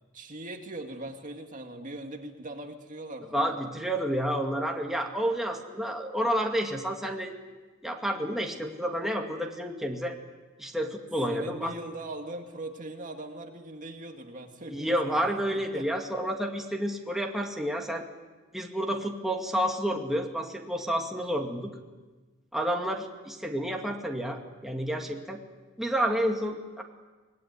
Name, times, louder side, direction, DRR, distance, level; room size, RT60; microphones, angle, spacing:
voice 1, 0.1-3.8 11.3-15.9 23.6-23.9, right 2 dB, 40° right, 4 dB, 2.1 m, -41 dB
voice 2, 3.3-7.3 7.8-10.2 10.6-11.7 14.7-18.1 18.5-21.7 22.5-25.4 25.8-26.8, equal, ahead, 1 dB, 2.2 m, -30 dB
25.5 x 20.0 x 9.7 m, 1.3 s
head